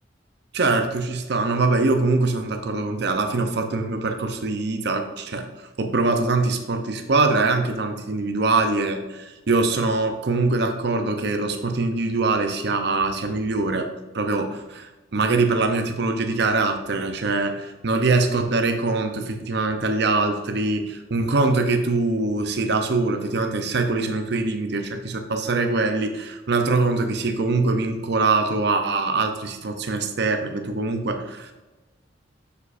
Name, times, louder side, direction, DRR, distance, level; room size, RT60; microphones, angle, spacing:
voice 1, 0.5-5.5 5.8-13.9 14.1-31.5, right 3 dB, 65° right, 5 dB, 0.6 m, -23 dB
7.0 x 6.8 x 2.5 m, 1.2 s
head